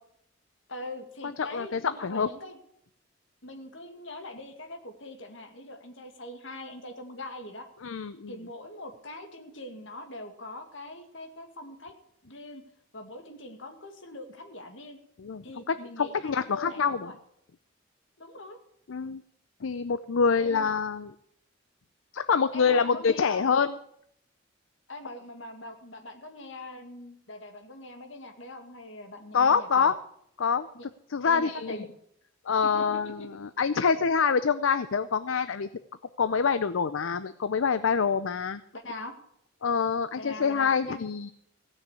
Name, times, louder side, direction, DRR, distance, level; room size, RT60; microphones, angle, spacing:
voice 1, 0.7-2.6 3.4-7.7 8.3-11.9 12.2-12.6 12.9-15.0 15.4-17.1 18.2-18.6 20.3-20.7 22.5-23.5 24.9-29.9 30.7-30.9 31.2-31.9 32.6-32.7 33.0-33.3 33.8-34.0 38.7-39.1 40.1-41.0, left 1 dB, 70° left, 5 dB, 2.2 m, -42 dB
voice 2, 1.5-2.3 7.8-8.3 15.2-17.1 18.9-19.2 19.6-21.1 22.1-23.7 29.3-29.9 30.4-30.7 31.1-31.9 32.5-35.7 36.2-38.6 39.6-41.3, left 6 dB, 85° left, 13 dB, 0.6 m, -26 dB
16.5 x 6.5 x 8.3 m, 0.72 s
head